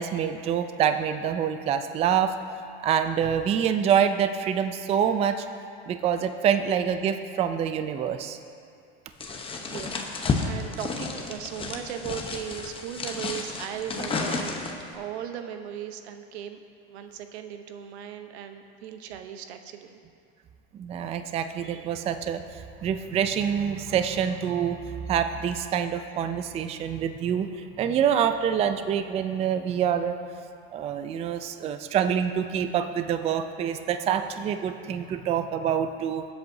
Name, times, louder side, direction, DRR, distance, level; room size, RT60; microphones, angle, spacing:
voice 1, 0.0-2.3 2.8-5.5 5.9-8.4 20.7-30.2 30.7-36.3, right 8 dB, 20° right, 9 dB, 0.4 m, -26 dB
sound 1, 9.2-14.9, left 4 dB, 15° left, 0.8 m, -32 dB
voice 2, 9.6-16.6 16.9-20.0, right 9 dB, 90° right, 7 dB, 0.9 m, -38 dB
21.0 x 8.0 x 2.7 m, 2.4 s
supercardioid pair, 135°, 32 cm